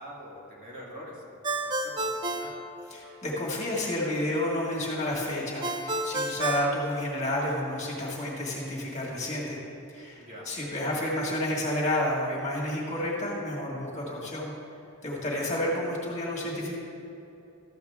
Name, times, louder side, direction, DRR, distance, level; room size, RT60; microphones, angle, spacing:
voice 1, 0.0-2.6 10.2-10.6, equal, 40° right, -5 dB, 1.9 m, -45 dB
Ringtone, 1.4-3.4 5.6-7.6, right 2 dB, 20° right, 0.4 m, -31 dB
voice 2, 2.9-9.6 9.9-14.5 15.0-16.7, left 1 dB, 35° left, -4 dB, 1.8 m, -30 dB
13.0 x 7.8 x 3.6 m, 2.8 s
head